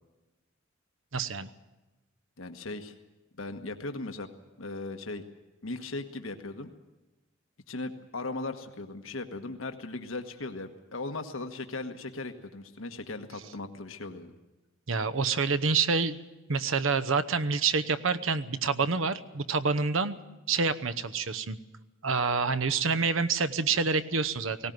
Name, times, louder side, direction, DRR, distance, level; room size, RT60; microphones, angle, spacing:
voice 1, 1.1-1.5 14.9-16.2 16.5-20.2 20.5-21.6 22.0-24.7, right 4 dB, 80° right, 13 dB, 0.9 m, -27 dB
voice 2, 2.4-2.9 3.4-4.3 4.6-5.2 5.6-6.7 7.7-14.3, left 2 dB, 90° left, 6 dB, 1.4 m, -38 dB
18.5 x 17.5 x 9.3 m, 1.1 s
head